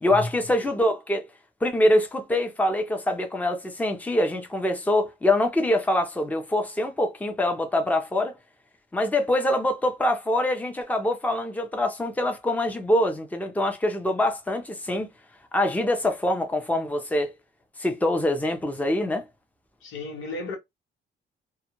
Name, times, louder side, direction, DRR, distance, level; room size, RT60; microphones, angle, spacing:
voice 1, 0.0-1.2 1.6-8.4 8.9-15.1 15.5-17.3 17.8-19.2, left 1 dB, 10° left, 0.6 m, -24 dB
voice 2, 19.8-20.6, left 2 dB, 85° left, 1.0 m, -33 dB
2.3 x 2.2 x 2.9 m
cardioid pair, 90°, 20 cm